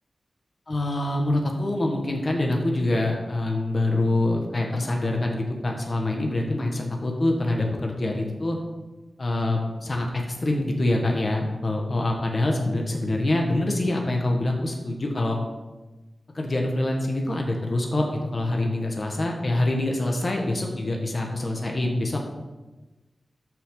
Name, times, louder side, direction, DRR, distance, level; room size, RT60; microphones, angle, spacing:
voice 1, 0.7-8.6 9.2-15.4 16.3-22.2, left 1 dB, 45° left, 1 dB, 1.6 m, -25 dB
13.5 x 6.2 x 3.9 m, 1.1 s
wide cardioid pair, 90°, 0 cm